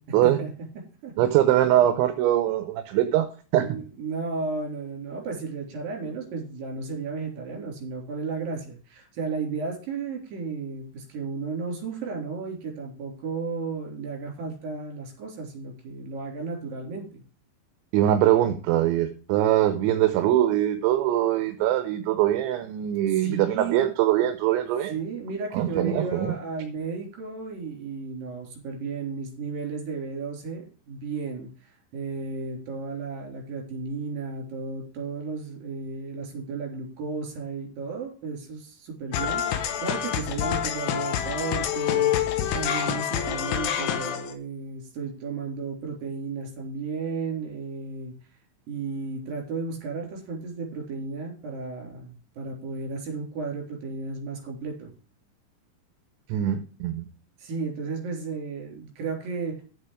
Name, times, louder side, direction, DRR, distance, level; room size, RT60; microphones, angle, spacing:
voice 1, 1.2-3.3 3.5-3.6 17.9-24.9 25.5-26.4 56.3-57.0, right 12 dB, 75° right, 8 dB, 3.0 m, -22 dB
voice 2, 3.6-17.2 23.1-23.9 24.9-42.1 42.5-48.1 48.7-54.9 57.4-59.6, right 4 dB, 50° right, 0 dB, 4.8 m, -34 dB
sound 1, 39.1-44.3, left 10 dB, 70° left, 2.8 m, -27 dB
9.7 x 7.4 x 4.9 m, 0.38 s
omnidirectional pair, 5.7 m